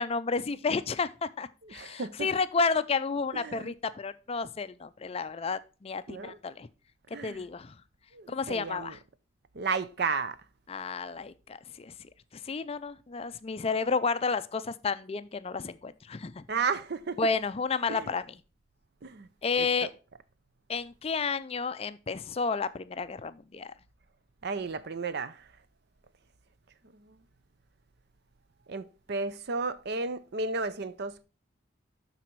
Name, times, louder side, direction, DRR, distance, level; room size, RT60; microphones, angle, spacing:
voice 1, 0.0-6.7 7.2-7.7 8.3-9.0 10.7-11.9 12.4-16.4 17.2-18.4 19.4-19.9 20.7-23.7, left 4 dB, 30° left, 0.4 m, -31 dB
voice 2, 1.7-2.3 3.3-3.7 6.1-6.4 7.1-7.4 8.1-9.0 9.6-10.4 16.5-17.2 17.9-18.1 19.0-19.3 19.6-19.9 24.4-25.4 28.7-31.2, right 4 dB, 55° right, 0.6 m, -33 dB
12.0 x 4.1 x 4.6 m
head